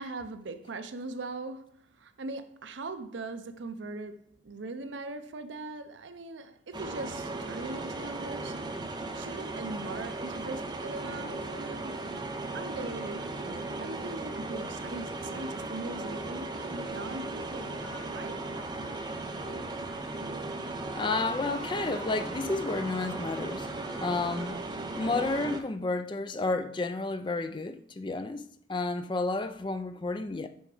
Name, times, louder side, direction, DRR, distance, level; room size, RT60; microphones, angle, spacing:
voice 1, 0.0-8.6 9.1-17.8 18.1-18.4, right 3 dB, 75° right, 0.6 m, -40 dB
sound 1, 6.7-25.6, right 2 dB, 25° right, 0.6 m, -37 dB
sound 2, 17.0-19.4 21.3-24.5, left 1 dB, 70° left, 2.5 m, -49 dB
voice 2, 20.9-23.7 24.0-24.6 24.9-30.5, left 3 dB, 25° left, 0.4 m, -31 dB
6.2 x 4.6 x 4.9 m
head